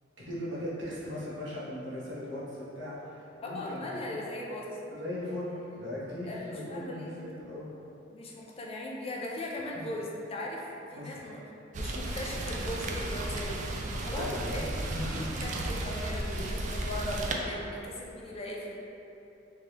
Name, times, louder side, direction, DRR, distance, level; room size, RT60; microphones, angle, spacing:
voice 1, 0.3-4.2 4.9-7.7 9.7-9.8 10.9-11.2 14.1-15.5, left 1 dB, 75° right, -8 dB, 1.0 m, -38 dB
voice 2, 3.5-4.7 6.3-7.2 8.1-10.6 10.9-11.4 11.7-14.7 15.0-18.7, left 1 dB, 30° left, -3 dB, 0.4 m, -38 dB
Rain, 11.7-17.3, right 2 dB, 40° right, 0.3 m, -34 dB
3.4 x 3.2 x 2.9 m, 2.9 s
head